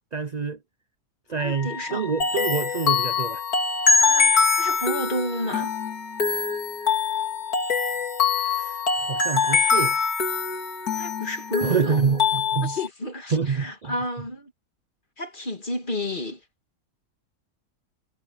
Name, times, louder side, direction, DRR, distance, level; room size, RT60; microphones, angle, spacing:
voice 1, 0.1-0.6 1.3-3.4 8.4-10.0 11.6-12.7 13.3-13.9, right 6 dB, 50° right, 0.5 m, -27 dB
Wind instrument woodwind instrument, 1.3-12.1, left 3 dB, 50° left, 1.8 m, -40 dB
voice 2, 1.3-2.0 4.0-5.7 10.9-12.2 12.6-14.5 15.2-16.4, left 1 dB, 30° left, 2.5 m, -31 dB
sound 1, 2.2-12.9, left 5 dB, 75° left, 2.7 m, -23 dB
omnidirectional pair, 1.6 m